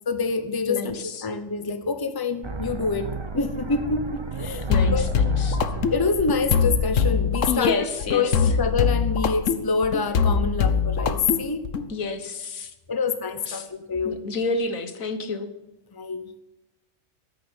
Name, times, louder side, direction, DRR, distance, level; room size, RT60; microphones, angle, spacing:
voice 1, 0.1-5.0 5.9-11.7 12.9-14.1 15.9-16.3, left 4 dB, 20° left, 9 dB, 0.9 m, -26 dB
voice 2, 0.7-1.3 4.7-5.6 7.5-8.2 11.9-12.7 13.5-13.7 14.1-15.5, left 3 dB, 85° left, 8 dB, 1.7 m, -29 dB
sound 1, 2.4-8.4, right 4 dB, 25° right, 0.9 m, -34 dB
sound 2, 4.7-11.9, left 6 dB, 70° left, 1.3 m, -23 dB
14.5 x 6.8 x 10.0 m, 1.0 s
omnidirectional pair, 1.4 m